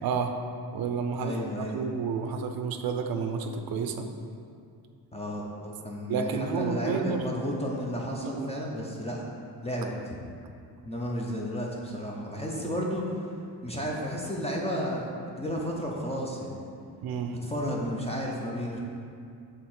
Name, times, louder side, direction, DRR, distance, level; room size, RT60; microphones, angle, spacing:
voice 1, 0.0-0.3 0.7-1.5 1.7-4.1 6.1-7.2 8.2-8.5 17.0-17.4, right 5 dB, 60° right, 5 dB, 0.5 m, -30 dB
voice 2, 1.2-1.8 5.1-9.3 9.6-10.2 10.8-13.3 13.6-15.1 15.4-16.6 17.3-18.8, equal, 15° left, -2 dB, 0.6 m, -32 dB
6.5 x 3.7 x 4.4 m, 2.4 s
cardioid pair, 130°, 40 cm